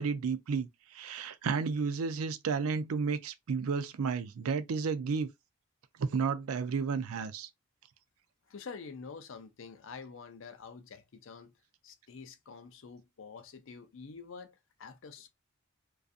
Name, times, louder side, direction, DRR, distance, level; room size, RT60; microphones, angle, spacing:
voice 1, 0.0-5.3 6.0-7.5, right 5 dB, 80° right, 0.4 m, -32 dB
voice 2, 8.5-11.5 11.8-15.3, left 5 dB, 65° left, 0.5 m, -47 dB
2.6 x 2.3 x 2.4 m
head